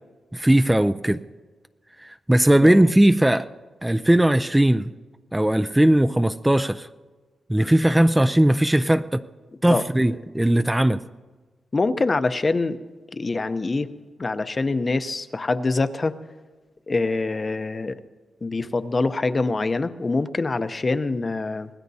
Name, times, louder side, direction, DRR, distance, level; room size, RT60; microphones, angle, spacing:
voice 1, 0.3-1.2 2.0-3.4 3.8-4.9 5.3-6.9 7.5-9.2 9.6-11.0, right 1 dB, 10° right, 10 dB, 0.4 m, -18 dB
voice 2, 2.6-2.9 9.7-9.8 11.7-12.8 13.1-13.9 14.2-16.2 16.9-17.9 18.4-21.7, left 3 dB, 30° left, 11 dB, 0.7 m, -24 dB
25.0 x 19.0 x 2.8 m, 1.3 s
cardioid pair, 95°, 0 cm